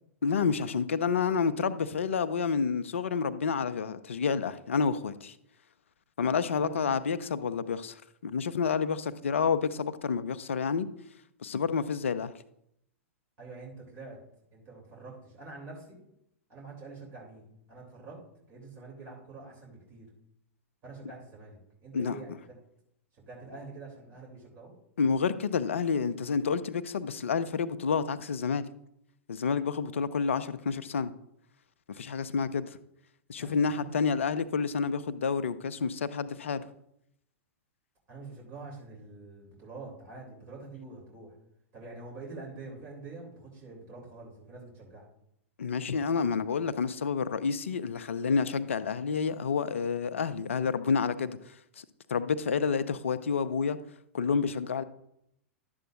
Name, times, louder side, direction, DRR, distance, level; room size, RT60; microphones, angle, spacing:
voice 1, 0.2-5.3 6.2-10.9 11.4-12.3 21.9-22.2 25.0-28.6 29.3-31.1 31.9-32.8 33.3-36.6 45.6-51.4 51.8-53.8 54.1-54.8, left 5 dB, 70° left, 0.5 m, -29 dB
voice 2, 13.4-14.2 14.5-16.0 16.5-18.2 18.5-20.1 20.8-22.6 23.2-24.7 33.3-33.9 38.1-41.4 41.7-45.0, right 3 dB, 35° right, 3.3 m, -46 dB
11.5 x 7.8 x 2.6 m
figure-of-eight pair, 95°, 7 cm